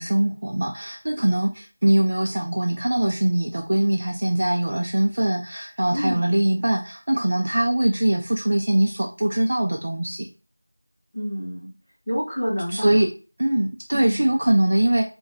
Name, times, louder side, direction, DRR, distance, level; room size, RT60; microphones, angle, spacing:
voice 1, 0.0-10.3 12.7-13.1 13.4-15.1, right 1 dB, 35° right, 0 dB, 0.3 m, -22 dB
voice 2, 11.1-11.7 12.1-12.9 13.9-14.2, equal, 5° left, -13 dB, 1.1 m, -28 dB
2.8 x 2.1 x 3.8 m, 0.33 s
figure-of-eight pair, 175°, 0 cm